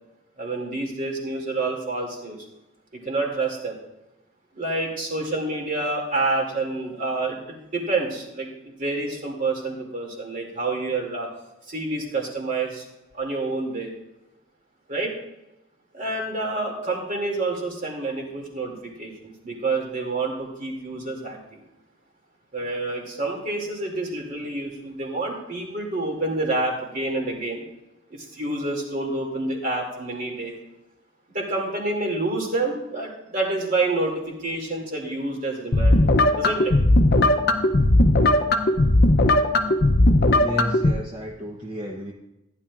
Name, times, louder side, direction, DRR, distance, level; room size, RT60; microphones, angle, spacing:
voice 1, 0.4-2.4 2.9-3.8 4.6-8.5 8.8-11.3 11.7-12.8 13.1-13.9 14.9-15.1 15.9-21.6 22.5-27.6 28.1-30.6 31.3-36.1 36.3-36.7, right 2 dB, 40° right, 0 dB, 2.5 m, -28 dB
sound 1, 35.7-40.9, left 1 dB, 45° left, 0.6 m, -18 dB
voice 2, 40.3-42.1, equal, 20° right, -1 dB, 0.9 m, -32 dB
15.0 x 10.0 x 2.5 m, 0.94 s
head